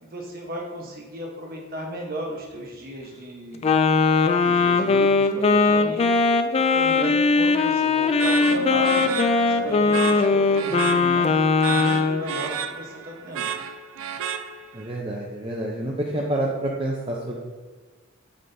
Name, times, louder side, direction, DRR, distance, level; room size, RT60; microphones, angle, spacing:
voice 1, 0.0-3.7 4.4-6.2 6.5-9.1 9.4-13.5, right 1 dB, 45° right, -1 dB, 1.1 m, -35 dB
Wind instrument woodwind instrument, 3.6-12.2, left 4 dB, 30° left, 0.3 m, -20 dB
sound 1, 8.2-14.9, right 7 dB, 75° right, 0.4 m, -32 dB
sound 2, 8.4-13.3, left 3 dB, 70° left, 1.7 m, -34 dB
voice 2, 14.7-17.4, right 1 dB, 25° right, -2 dB, 0.6 m, -28 dB
7.6 x 4.9 x 2.7 m, 1.4 s
head